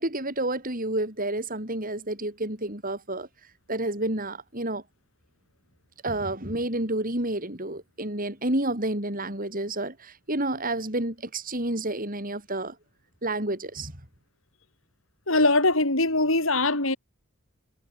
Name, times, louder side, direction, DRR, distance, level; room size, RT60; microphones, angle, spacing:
voice 1, 0.0-4.8 6.0-12.8 13.2-13.9, right 1 dB, 40° right, 7.8 m, -30 dB
voice 2, 15.3-17.0, left 2 dB, 65° left, 6.1 m, -22 dB
head